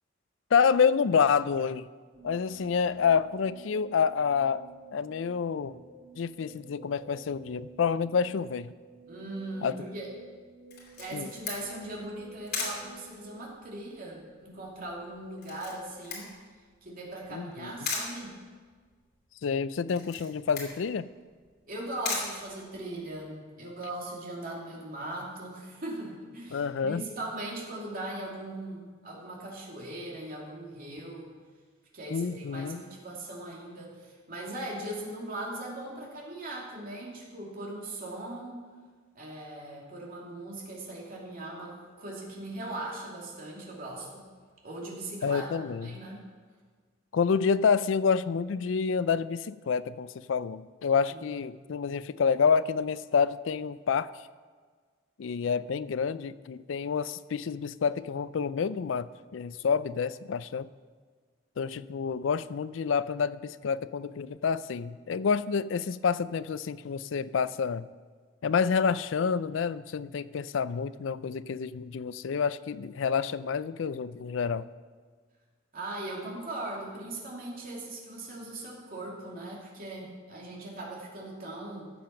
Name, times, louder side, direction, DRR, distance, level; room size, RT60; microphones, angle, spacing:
voice 1, 0.5-1.9 2.2-4.6 4.9-5.8 6.2-8.7 9.6-9.8 11.1-11.3 17.3-17.7 19.4-21.0 26.5-27.0 32.1-32.8 45.2-46.0 47.1-54.1 55.2-60.7 61.6-67.9 68.4-74.7, left 6 dB, 75° left, 16 dB, 0.4 m, -28 dB
sound 1, 2.1-14.2, right 4 dB, 65° right, 2.1 m, -52 dB
voice 2, 9.1-10.1 11.0-16.3 16.8-18.4 21.7-31.3 31.9-38.6 39.1-44.3 44.6-45.5 45.8-46.2 51.1-51.2 51.5-51.6 75.7-81.9, right 1 dB, 50° right, -3 dB, 2.7 m, -39 dB
Camera, 10.7-23.2, left 4 dB, 55° left, 2.9 m, -40 dB
13.5 x 7.6 x 5.8 m, 1.5 s
head